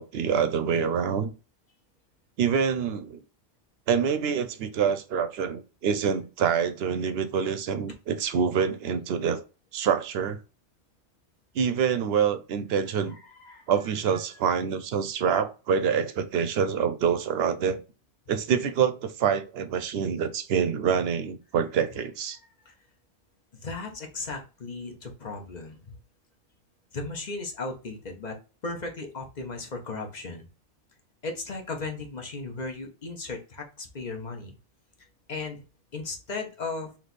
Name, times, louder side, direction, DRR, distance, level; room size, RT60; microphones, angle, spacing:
voice 1, 0.0-1.3 2.4-3.2 3.9-9.4 9.7-10.4 11.5-13.2 13.7-17.8 18.3-22.4, right 7 dB, 65° right, 0.7 m, -26 dB
voice 2, 13.1-13.6 22.6-22.7 23.6-25.8 26.9-28.4 28.6-30.5 31.2-34.6 35.3-35.6 35.9-36.9, left 3 dB, 40° left, 0.9 m, -36 dB
3.3 x 2.9 x 4.1 m
omnidirectional pair, 1.2 m